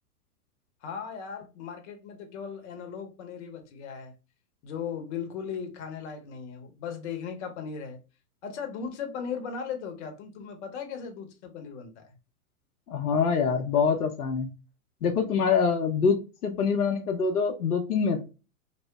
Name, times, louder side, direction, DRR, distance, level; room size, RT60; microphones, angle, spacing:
voice 1, 0.8-4.1 4.6-8.0 8.4-12.1, left 6 dB, 50° left, 0.8 m, -37 dB
voice 2, 12.9-14.5 15.0-16.2 16.4-18.2, left 5 dB, 90° left, 0.6 m, -25 dB
2.7 x 2.1 x 2.2 m
hypercardioid pair, 105°, 44 cm